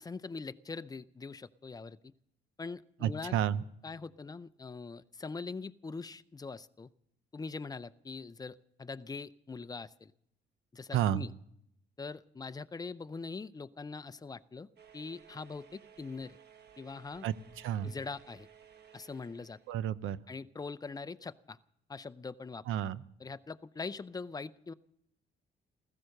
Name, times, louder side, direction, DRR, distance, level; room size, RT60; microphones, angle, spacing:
voice 1, 0.0-2.1 2.6-3.4 3.8-6.9 7.3-10.1 10.7-11.3 12.0-14.7 14.9-16.4 16.8-17.3 17.8-18.5 18.9-19.6 20.3-21.6 21.9-22.6 23.2-24.7, left 4 dB, 20° left, 14 dB, 0.6 m, -42 dB
voice 2, 3.0-3.6 10.9-11.2 17.2-17.9 19.7-20.2 22.7-23.0, right 10 dB, 85° right, 16 dB, 0.6 m, -31 dB
sound 1, 14.8-19.8, right 8 dB, 55° right, 1.3 m, -58 dB
15.5 x 13.5 x 6.6 m, 0.73 s
cardioid pair, 90°, 20 cm